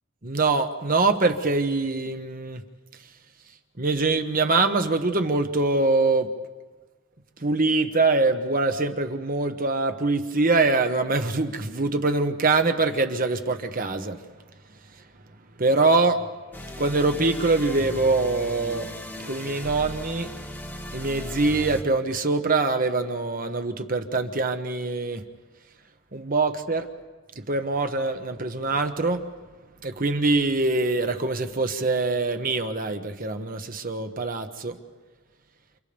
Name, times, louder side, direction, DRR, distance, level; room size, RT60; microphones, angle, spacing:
voice 1, 0.2-2.6 3.8-6.3 7.4-14.2 15.6-16.2 16.8-18.9 19.3-20.3 20.9-25.2 26.1-26.9 27.5-29.2 29.8-34.8, right 3 dB, 45° right, 7 dB, 1.3 m, -24 dB
sound 1, 16.5-21.8, left 1 dB, 10° left, 1.3 m, -37 dB
29.0 x 29.0 x 3.5 m, 1.3 s
head